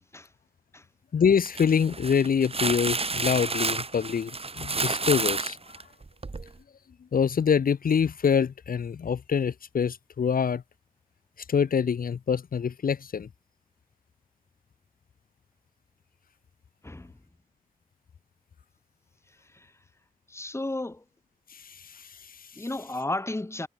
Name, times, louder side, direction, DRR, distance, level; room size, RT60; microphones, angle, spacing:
voice 1, 1.1-5.6 7.1-10.6 11.5-13.3 21.5-22.5, left 7 dB, 75° left, 1.1 m, -25 dB
sound 1, 1.4-6.5, right 3 dB, 40° right, 3.5 m, -30 dB
voice 2, 20.3-21.0 22.6-23.7, left 2 dB, 20° left, 1.9 m, -33 dB
wide cardioid pair, 80°, 15 cm